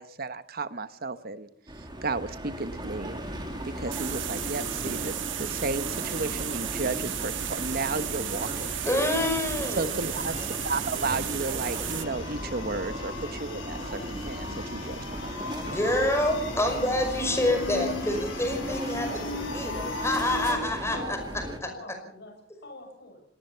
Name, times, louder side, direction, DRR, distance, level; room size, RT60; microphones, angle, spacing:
voice 1, 0.0-1.5 2.0-3.2 3.6-8.9 9.8-10.4 10.6-14.0 14.3-15.8, right 3 dB, 50° right, 12 dB, 1.2 m, -33 dB
sound 1, 1.7-21.6, right 1 dB, 25° right, 2.4 m, -37 dB
sound 2, 1.8-20.5, left 2 dB, 85° left, 6.9 m, -39 dB
sound 3, 3.9-12.1, right 13 dB, 70° right, 1.2 m, -34 dB
voice 2, 8.8-9.9 15.6-19.7 20.0-21.2 21.6-21.7, left 1 dB, 15° left, 5 dB, 5.5 m, -27 dB
voice 3, 20.9-23.2, left 2 dB, 60° left, 3 dB, 7.6 m, -44 dB
26.0 x 19.0 x 5.8 m, 0.65 s
head